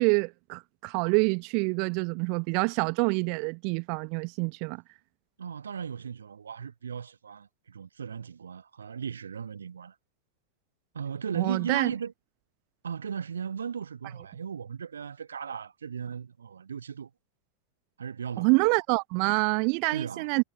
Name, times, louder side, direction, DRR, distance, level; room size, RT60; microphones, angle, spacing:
voice 1, 0.0-4.8 11.3-11.9 18.4-20.4, right 38 dB, 45° right, 0.9 m, -26 dB
voice 2, 5.4-9.9 10.9-12.1 12.8-17.1 18.0-18.6 19.9-20.3, right 7 dB, 70° right, 1.0 m, -37 dB
figure-of-eight pair, 90°, 0 cm